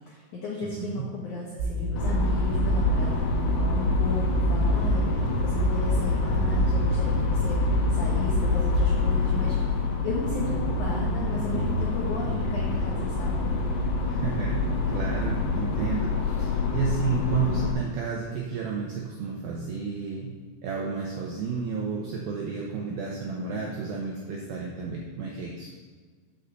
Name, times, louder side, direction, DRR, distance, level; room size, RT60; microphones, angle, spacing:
voice 1, 0.1-13.5, left 3 dB, 90° left, -3 dB, 1.7 m, -35 dB
voice 2, 0.6-1.0 14.1-14.5 14.9-20.3 20.6-25.7, right 5 dB, 90° right, -2 dB, 2.1 m, -31 dB
sound 1, 1.6-9.0, right 1 dB, 60° right, 3.3 m, -26 dB
sound 2, 2.0-17.7, left 3 dB, 75° left, 2.0 m, -27 dB
6.6 x 6.5 x 6.6 m, 1.5 s
omnidirectional pair, 5.3 m